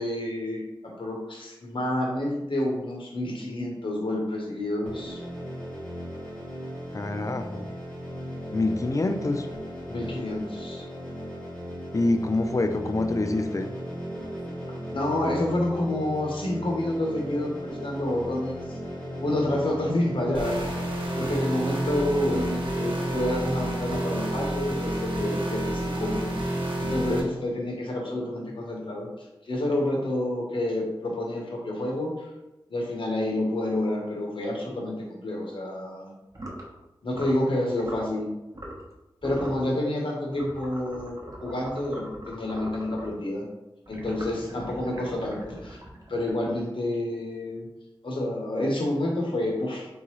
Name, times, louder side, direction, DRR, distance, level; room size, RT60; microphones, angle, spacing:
voice 1, 0.0-5.2 9.9-10.9 14.9-18.8 19.2-20.6 21.2-32.3 32.7-36.1 37.0-38.3 39.2-43.4 43.9-45.8 46.1-47.7 48.0-49.9, left 1 dB, 75° left, -1 dB, 1.1 m, -29 dB
sound 1, 4.8-23.5, equal, 15° left, 1.4 m, -37 dB
voice 2, 6.9-7.6 8.5-9.5 11.9-13.7, left 2 dB, 40° left, 7 dB, 0.4 m, -26 dB
sound 2, 20.3-27.2, right 1 dB, 60° right, 1.1 m, -29 dB
sound 3, 36.3-36.7 37.1-37.4 37.8-38.1 38.5-38.9 39.2-39.6 40.3-43.2 43.9-46.7, equal, 40° right, 0.9 m, -41 dB
3.8 x 3.7 x 3.1 m, 0.99 s
wide cardioid pair, 65°, 9 cm